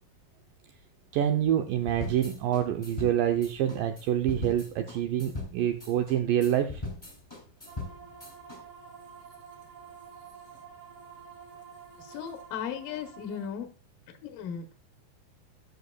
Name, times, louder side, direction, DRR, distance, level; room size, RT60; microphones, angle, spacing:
voice 1, 1.1-6.8, right 10 dB, 80° right, 6 dB, 2.0 m, -27 dB
sound 1, 1.9-8.6, left 2 dB, 10° left, 1.7 m, -40 dB
sound 2, 7.7-13.5, right 7 dB, 60° right, 3.1 m, -49 dB
voice 2, 12.0-13.7 14.2-14.7, left 8 dB, 70° left, 5 dB, 2.4 m, -36 dB
13.5 x 6.7 x 2.2 m, 0.34 s
omnidirectional pair, 4.5 m